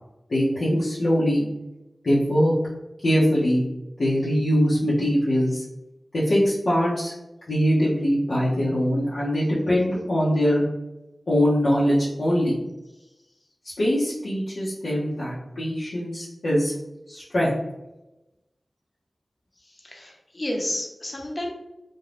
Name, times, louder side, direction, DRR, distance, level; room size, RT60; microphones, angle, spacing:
voice 1, 0.3-1.5 2.0-2.5 3.0-3.7 4.0-5.6 6.1-7.1 7.5-10.6 11.3-12.6 13.8-16.7 17.1-17.5, equal, 80° left, -10 dB, 0.7 m, -22 dB
voice 2, 19.6-21.5, left 1 dB, 40° left, 0 dB, 0.7 m, -31 dB
2.6 x 2.2 x 3.3 m, 0.97 s
wide cardioid pair, 60°, 0 cm